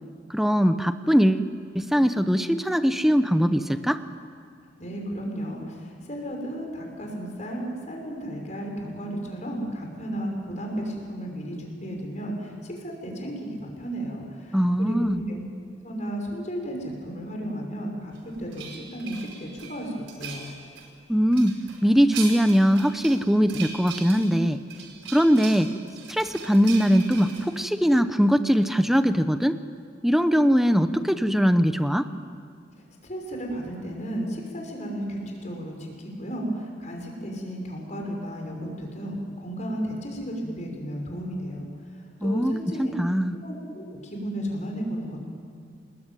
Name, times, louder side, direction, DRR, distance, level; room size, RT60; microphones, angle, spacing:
voice 1, 0.3-1.5 1.7-4.0 14.5-15.2 21.1-21.5 21.8-24.6 25.1-25.7 26.1-29.5 30.0-32.1 42.2-42.5 42.8-43.3, equal, ahead, 10 dB, 1.0 m, -21 dB
voice 2, 4.8-15.4 15.8-20.5 33.0-41.7 42.2-42.9 43.4-45.2, equal, 40° left, 1 dB, 5.8 m, -34 dB
sound 1, 18.1-20.9 21.3-27.6, right 6 dB, 85° right, 4.9 m, -40 dB
28.0 x 21.0 x 9.3 m, 2.3 s
head